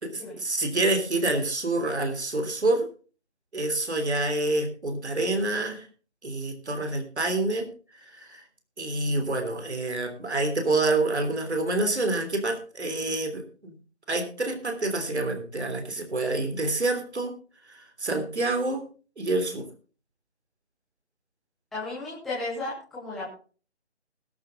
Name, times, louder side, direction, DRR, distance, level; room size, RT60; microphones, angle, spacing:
voice 1, 0.0-2.9 3.5-5.9 6.2-7.7 7.9-8.4 8.8-13.7 14.1-17.3 17.7-18.9 19.2-19.7, right 2 dB, 70° right, 6 dB, 3.2 m, -27 dB
voice 2, 21.7-23.3, left 2 dB, ahead, -9 dB, 0.8 m, -34 dB
20.5 x 7.7 x 3.8 m, 0.38 s
figure-of-eight pair, 155°, 34 cm